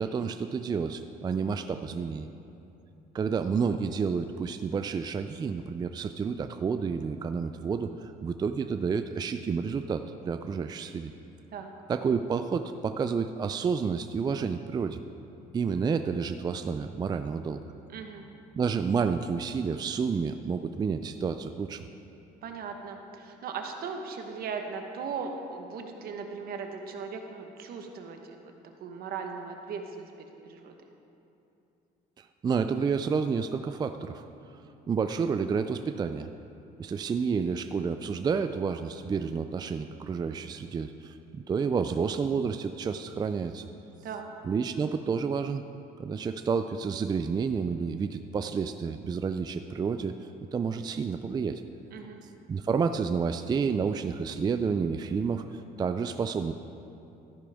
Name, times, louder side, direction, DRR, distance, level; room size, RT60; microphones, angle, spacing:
voice 1, 0.0-2.3 3.1-11.1 11.9-15.0 15.5-17.6 18.5-21.9 32.2-34.3 34.9-36.3 36.8-43.6 44.4-45.6 46.0-51.6 52.5-56.5, right 5 dB, 25° right, 9 dB, 0.3 m, -30 dB
voice 2, 17.9-18.2 22.4-28.5 28.8-30.1 30.4-30.7 44.0-44.3 51.9-52.2, right 5 dB, 65° right, 4 dB, 1.2 m, -38 dB
13.5 x 10.0 x 3.6 m, 2.8 s
cardioid pair, 110°, 17 cm